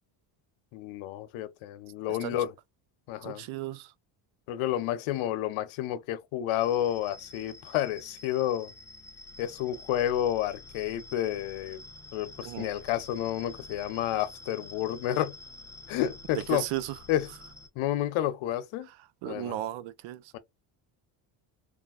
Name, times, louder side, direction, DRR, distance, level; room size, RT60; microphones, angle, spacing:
voice 1, 0.7-2.5 3.1-3.5 4.5-8.7 9.4-11.8 12.1-15.3 15.9-16.6 17.1-17.3 17.8-18.9 19.3-19.6 20.3-20.4, left 12 dB, 75° left, 0.7 m, -30 dB
voice 2, 3.2-3.9 12.4-12.7 16.5-17.0 18.9-19.0 19.2-20.3, right 15 dB, 70° right, 0.6 m, -35 dB
sound 1, 6.6-17.7, left 2 dB, 5° left, 0.8 m, -48 dB
3.3 x 2.4 x 2.4 m
cardioid pair, 95°, 49 cm